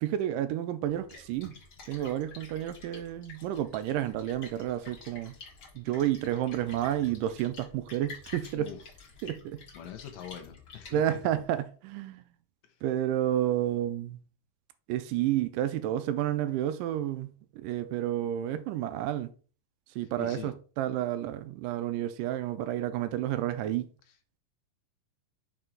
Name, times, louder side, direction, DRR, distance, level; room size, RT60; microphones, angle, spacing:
voice 1, 0.0-1.5 1.9-5.4 5.8-8.7 9.2-9.6 10.9-12.3 12.8-14.2 14.9-17.3 17.6-19.3 20.0-23.9, right 12 dB, 80° right, 2.0 m, -30 dB
Splash splatter, 0.9-11.5, left 4 dB, 45° left, 1.6 m, -50 dB
voice 2, 8.6-8.9 9.7-11.2 12.6-12.8 20.0-20.6 24.1-24.2, left 10 dB, 80° left, 2.3 m, -44 dB
5.9 x 4.5 x 3.8 m
omnidirectional pair, 4.0 m